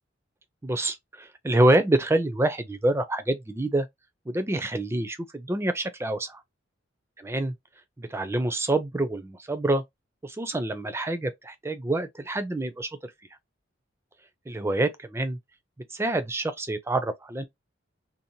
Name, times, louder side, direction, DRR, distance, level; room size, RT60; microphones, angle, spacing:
voice 1, 0.6-3.9 4.3-6.4 7.2-7.5 8.0-9.8 10.2-13.1 14.5-15.4 15.9-17.4, right 1 dB, 15° right, 0.4 m, -26 dB
2.6 x 2.0 x 2.8 m
head